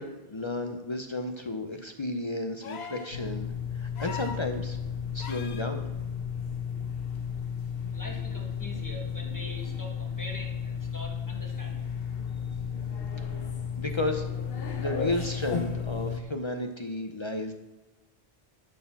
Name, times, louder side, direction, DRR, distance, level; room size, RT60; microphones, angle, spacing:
voice 1, 0.0-4.8 5.1-5.9 13.2-13.3 13.8-14.3 14.8-17.5, left 2 dB, 35° left, 5 dB, 0.6 m, -33 dB
sound 1, 2.6-3.2 4.0-4.5 5.2-5.7 7.2-7.3, left 6 dB, 85° left, 1.0 m, -40 dB
sound 2, 3.1-16.2, left 7 dB, 70° left, 1.1 m, -33 dB
voice 2, 7.9-12.0, equal, 20° left, -1 dB, 1.4 m, -43 dB
11.0 x 4.4 x 5.8 m, 1.2 s
omnidirectional pair, 1.0 m